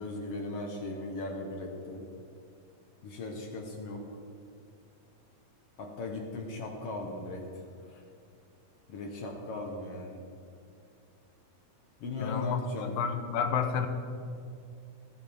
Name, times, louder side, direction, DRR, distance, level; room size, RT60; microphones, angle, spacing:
voice 1, 0.0-2.0 3.0-4.0 5.8-8.0 8.9-10.2 12.0-12.9, left 2 dB, 60° left, 1 dB, 1.7 m, -38 dB
voice 2, 12.2-12.6 13.0-13.9, left 7 dB, 80° left, 8 dB, 2.5 m, -30 dB
17.5 x 11.0 x 3.6 m, 2.4 s
omnidirectional pair, 4.0 m